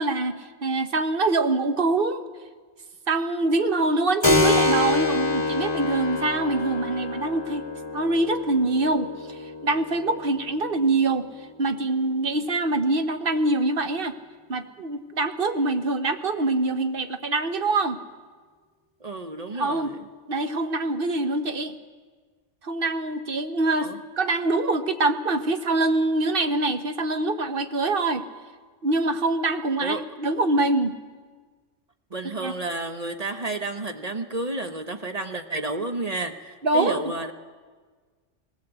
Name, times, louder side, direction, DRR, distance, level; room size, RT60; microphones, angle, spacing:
voice 1, 0.0-2.2 3.1-11.3 11.6-14.1 14.5-18.0 19.5-20.0 20.3-21.8 22.6-23.9 24.2-28.3 28.8-30.9 32.4-32.5 36.6-37.0, right 2 dB, 50° right, 8 dB, 1.3 m, -24 dB
Keyboard (musical), 4.2-12.4, left 2 dB, 20° left, 2.1 m, -27 dB
voice 2, 19.0-20.0 23.8-24.0 29.8-30.0 32.1-37.3, right 2 dB, 35° right, 6 dB, 1.0 m, -31 dB
20.0 x 18.0 x 8.1 m, 1.5 s
omnidirectional pair, 1.2 m